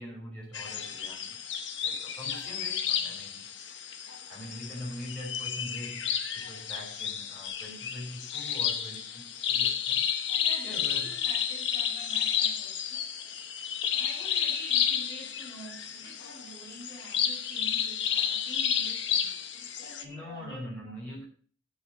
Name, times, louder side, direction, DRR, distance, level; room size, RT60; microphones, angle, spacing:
voice 1, 0.0-1.4 1.8-3.4 4.3-10.1 10.6-11.2 20.0-21.2, left 1 dB, 5° left, 5.1 m, -43 dB
sound 1, 0.5-20.0, left 8 dB, 75° left, 1.1 m, -31 dB
voice 2, 10.3-13.6 13.9-21.0, right 1 dB, 25° left, 4.6 m, -48 dB
8.0 x 6.7 x 7.6 m
head